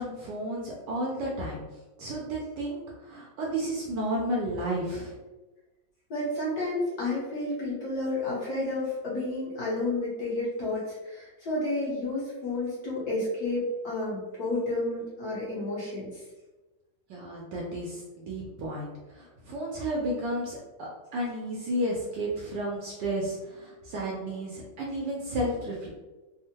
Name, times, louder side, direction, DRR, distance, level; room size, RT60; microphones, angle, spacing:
voice 1, 0.0-1.6 2.0-5.2 17.1-25.9, right 1 dB, 75° right, -3 dB, 1.0 m, -32 dB
voice 2, 6.1-16.2, left 2 dB, 55° left, -7 dB, 1.3 m, -31 dB
3.5 x 2.0 x 2.8 m, 1.1 s
omnidirectional pair, 2.2 m